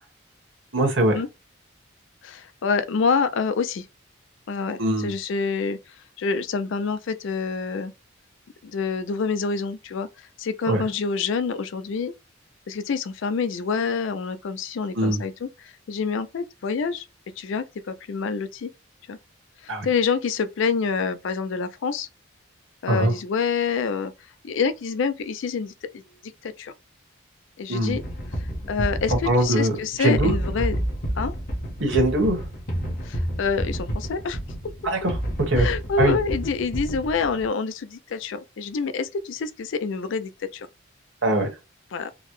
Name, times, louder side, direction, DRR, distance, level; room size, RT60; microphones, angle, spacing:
voice 1, 0.7-1.1 4.8-5.1 10.7-10.8 14.9-15.2 19.7-19.9 22.9-23.1 27.7-28.0 29.2-29.7 30.0-30.3 31.8-32.4 34.8-35.2 35.5-35.7 36.0-36.2 41.2-41.5, right 1 dB, 65° right, 1.2 m, -21 dB
voice 2, 2.2-3.9 4.5-5.8 6.2-7.9 8.6-10.1 10.4-12.1 12.7-17.0 17.4-18.7 19.1-19.2 19.6-22.1 22.8-24.1 24.4-26.0 26.4-26.7 27.6-28.0 28.7-30.8 31.2-31.3 33.0-34.4 35.6-40.7 41.9-42.1, left 5 dB, 65° left, 0.4 m, -27 dB
sound 1, 27.9-37.4, equal, 50° left, 1.0 m, -29 dB
3.8 x 2.1 x 3.0 m
head